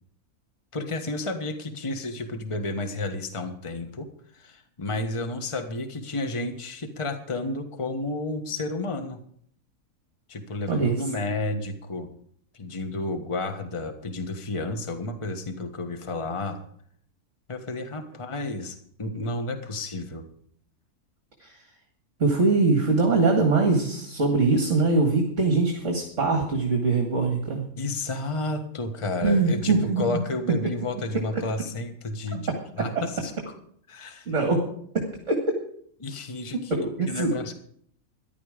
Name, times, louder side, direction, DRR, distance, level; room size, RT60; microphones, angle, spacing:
voice 1, 0.7-4.1 4.3-9.2 10.3-12.1 12.5-16.6 17.5-20.2 27.8-32.5 32.8-33.3 33.9-34.3 36.0-36.8 37.1-37.5, left 2 dB, 20° left, 6 dB, 1.3 m, -31 dB
voice 2, 22.2-27.6 29.2-30.2 34.3-34.6 35.3-35.4 36.7-37.3, right 3 dB, 55° right, 2 dB, 2.3 m, -22 dB
14.5 x 11.0 x 5.0 m, 0.63 s
omnidirectional pair, 1.6 m